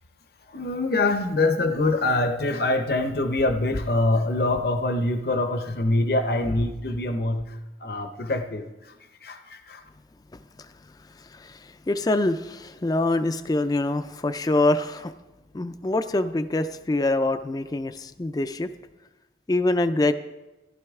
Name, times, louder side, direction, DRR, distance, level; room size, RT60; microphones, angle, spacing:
voice 1, 0.5-7.5 7.8-8.7 9.2-9.8, left 2 dB, 55° left, 7 dB, 0.7 m, -24 dB
voice 2, 10.3-15.1 15.5-18.7 19.5-20.1, left 2 dB, 20° left, 10 dB, 0.4 m, -25 dB
15.0 x 12.0 x 3.6 m, 1.1 s
head